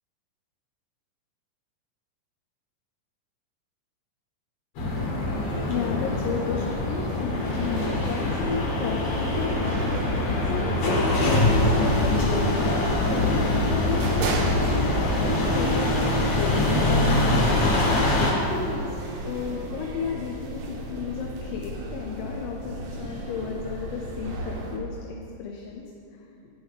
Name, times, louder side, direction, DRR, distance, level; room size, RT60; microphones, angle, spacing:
sound 1, 4.8-18.3, left 2 dB, 55° left, 2.3 m, -24 dB
voice 1, 5.7-12.8 13.1-16.7 17.5-25.8 26.1-26.2, left 6 dB, 90° left, 1 dB, 2.4 m, -33 dB
sound 2, 7.3-24.8, right 1 dB, 70° right, 1.9 m, -34 dB
9.8 x 8.7 x 3.5 m, 2.6 s
omnidirectional pair, 4.0 m